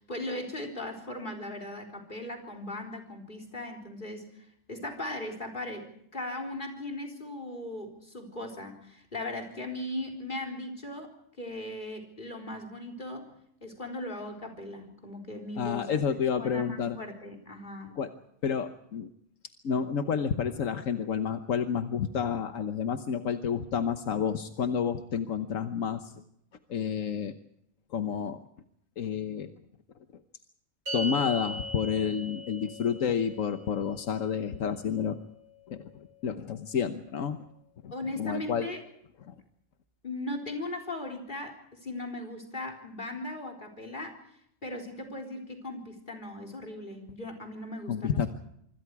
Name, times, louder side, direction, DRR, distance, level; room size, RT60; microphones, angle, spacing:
voice 1, 0.0-11.1 11.4-13.3 13.6-16.0 16.4-17.9 37.9-38.8 40.0-44.2 44.6-48.3, left 1 dB, 40° left, 2 dB, 4.2 m, -38 dB
voice 2, 15.6-17.0 18.0-18.1 18.4-19.1 19.6-26.1 26.7-27.3 27.9-28.4 29.0-29.5 30.9-35.2 35.7-35.8 36.2-37.4 37.8-37.9 38.2-38.7 39.3-39.4 47.9-48.3, left 7 dB, 80° left, 8 dB, 1.4 m, -30 dB
sound 1, 30.9-37.4, equal, 65° right, 6.3 m, -41 dB
25.5 x 25.0 x 4.8 m, 0.74 s
omnidirectional pair, 1.3 m